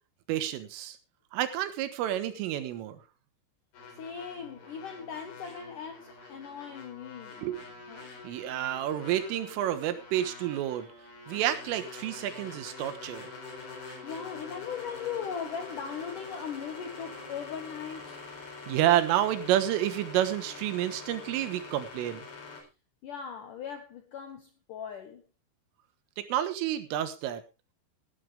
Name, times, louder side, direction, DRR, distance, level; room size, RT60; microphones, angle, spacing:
voice 1, 0.3-1.0 1.3-3.0 7.4-7.6 8.2-10.9 11.3-13.3 18.7-22.3 26.2-27.4, right 12 dB, 90° right, 3.9 m, -29 dB
sound 1, 3.7-22.6, left 3 dB, 50° left, 6.0 m, -45 dB
voice 2, 3.9-7.4 7.9-8.1 14.0-18.2 23.0-25.2, left 7 dB, 75° left, 1.9 m, -39 dB
16.5 x 12.0 x 3.4 m
omnidirectional pair, 5.6 m